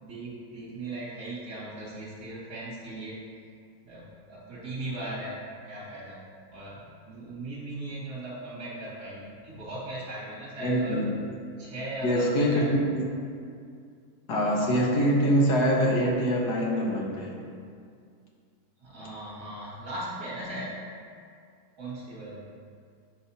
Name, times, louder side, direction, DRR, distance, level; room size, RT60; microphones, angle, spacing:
voice 1, 0.0-3.2 3.8-5.4 5.7-6.2 6.5-11.0 11.6-12.8 18.8-20.8 21.8-22.4, right 1 dB, 80° right, -8 dB, 2.8 m, -38 dB
voice 2, 10.6-11.1 12.0-13.1 14.3-17.4, equal, 80° left, -2 dB, 1.7 m, -24 dB
10.5 x 5.7 x 2.8 m, 2.3 s
omnidirectional pair, 1.7 m